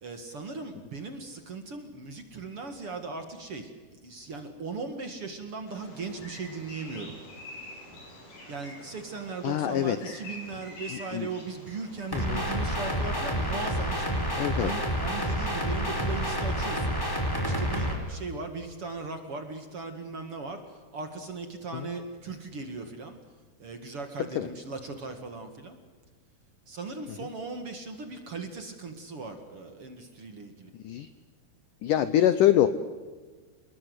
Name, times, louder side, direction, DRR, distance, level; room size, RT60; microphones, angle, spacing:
voice 1, 0.0-7.1 8.2-17.0 17.4-23.2 23.6-25.8 26.7-30.7, right 4 dB, 45° right, 6 dB, 2.2 m, -38 dB
Bird vocalization bird call bird song, 5.7-12.2, left 1 dB, 50° left, 7.3 m, -46 dB
voice 2, 9.4-10.2 10.9-11.3 12.1-12.4 14.4-14.7 21.7-21.9 24.2-24.5 30.8-31.1 31.8-32.7, left 11 dB, 75° left, 12 dB, 1.9 m, -25 dB
sound 1, 12.1-17.9, equal, 5° left, 4.8 m, -29 dB
28.5 x 20.5 x 7.9 m, 1.4 s
omnidirectional pair, 4.8 m